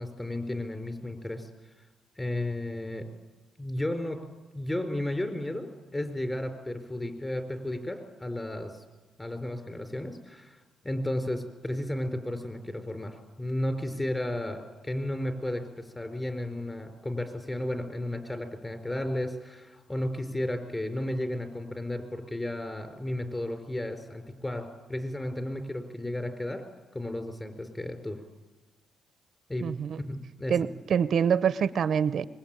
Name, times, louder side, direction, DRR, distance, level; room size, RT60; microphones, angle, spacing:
voice 1, 0.0-1.5 2.2-3.1 3.6-4.2 4.5-8.8 9.2-10.6 10.8-26.6 26.9-28.2 29.5-29.7 30.0-30.7, left 1 dB, 15° left, 7 dB, 4.5 m, -33 dB
voice 2, 29.6-30.0 30.5-32.3, right 7 dB, 60° right, 15 dB, 0.7 m, -25 dB
24.0 x 21.5 x 9.0 m, 1.2 s
cardioid pair, 90°, 0 cm